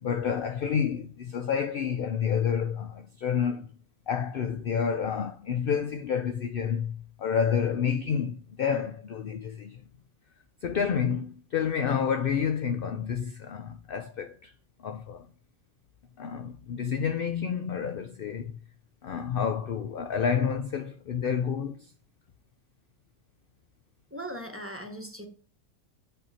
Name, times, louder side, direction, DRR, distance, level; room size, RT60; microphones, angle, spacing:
voice 1, 0.0-3.7 4.1-9.8 10.6-14.5 14.8-15.3 16.2-18.6 19.0-21.9, left 7 dB, 65° left, 0.5 m, -29 dB
voice 2, 24.1-25.3, right 1 dB, 10° right, 1.0 m, -39 dB
7.4 x 5.6 x 4.2 m
omnidirectional pair, 1.5 m